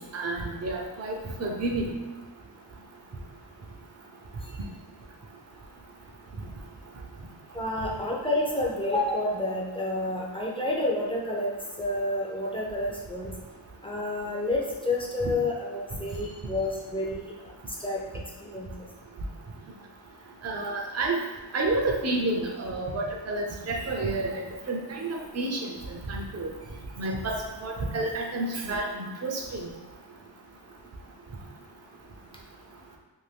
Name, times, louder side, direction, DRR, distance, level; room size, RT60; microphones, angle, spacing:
voice 1, 0.1-1.9 20.4-21.2 21.5-25.7 26.1-26.5 27.0-29.7, right 2 dB, 35° right, -1 dB, 0.6 m, -30 dB
voice 2, 7.5-13.3 13.8-17.3 17.8-18.0 18.4-18.7, left 1 dB, 10° left, -3 dB, 0.6 m, -29 dB
2.7 x 2.5 x 3.3 m, 1.3 s
wide cardioid pair, 80°, 46 cm